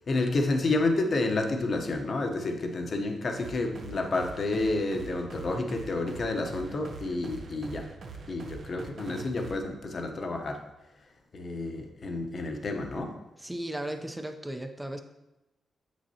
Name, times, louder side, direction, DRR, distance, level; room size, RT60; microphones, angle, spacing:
voice 1, 0.1-7.9 8.3-10.6 11.3-13.2, left 2 dB, 45° left, 4 dB, 0.8 m, -30 dB
sound 1, 3.4-9.6, right 4 dB, 60° right, 0.7 m, -44 dB
voice 2, 13.4-15.0, right 1 dB, 10° right, 5 dB, 0.5 m, -36 dB
7.2 x 6.2 x 2.8 m, 0.98 s
cardioid pair, 110°, 0 cm